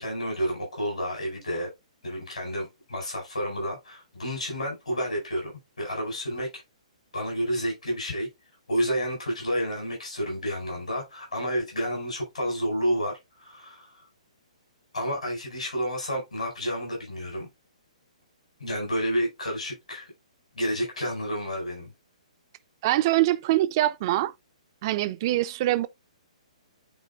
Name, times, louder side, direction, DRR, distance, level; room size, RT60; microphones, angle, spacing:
voice 1, 0.0-1.7 2.0-5.5 5.8-6.5 7.1-8.3 8.7-14.0 14.9-17.5 18.6-20.1 20.5-21.9, equal, 70° left, 4.5 m, -30 dB
voice 2, 22.8-24.3 24.8-25.9, right 15 dB, 35° right, 0.4 m, -24 dB
9.5 x 4.2 x 2.4 m
figure-of-eight pair, 125°, 4 cm